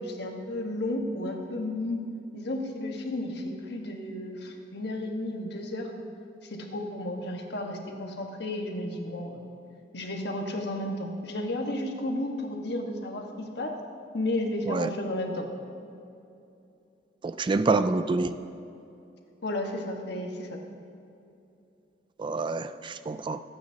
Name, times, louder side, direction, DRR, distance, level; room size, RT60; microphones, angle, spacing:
voice 1, 0.0-2.0 2.3-5.9 6.4-9.4 9.9-13.7 14.1-15.5 19.4-20.6, left 1 dB, 65° left, 2 dB, 1.4 m, -33 dB
voice 2, 17.2-18.4 22.2-23.4, right 3 dB, 25° right, 11 dB, 0.3 m, -27 dB
25.5 x 8.8 x 2.8 m, 2.7 s
head